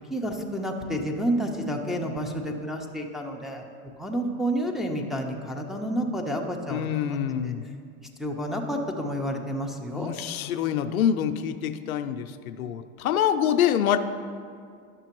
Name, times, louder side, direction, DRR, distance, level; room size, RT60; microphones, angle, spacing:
voice 1, 0.1-3.6 4.0-7.2 7.4-7.5 8.2-10.1, equal, ahead, 0 dB, 0.6 m, -30 dB
voice 2, 6.7-7.6 9.9-14.0, left 9 dB, 90° left, 9 dB, 0.6 m, -26 dB
11.5 x 6.8 x 3.0 m, 2.2 s
hypercardioid pair, 105°, 41 cm